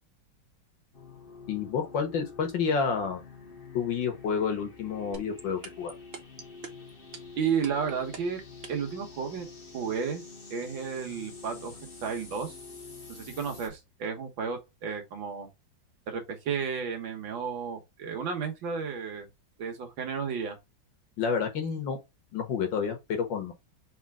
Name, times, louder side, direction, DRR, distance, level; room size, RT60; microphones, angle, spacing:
sound 1, 0.9-13.7, left 4 dB, 35° left, 1.0 m, -47 dB
voice 1, 1.5-3.2 3.7-5.9 21.2-22.0 22.3-23.5, left 6 dB, 65° left, 1.8 m, -29 dB
sound 2, 5.1-8.9, right 5 dB, 50° right, 0.7 m, -41 dB
voice 2, 7.4-8.4 8.7-9.5 9.7-10.2 10.5-11.7 12.0-12.5 13.1-15.5 16.1-19.3 19.6-20.6, right 6 dB, 70° right, 1.8 m, -32 dB
4.2 x 3.4 x 3.5 m
omnidirectional pair, 2.2 m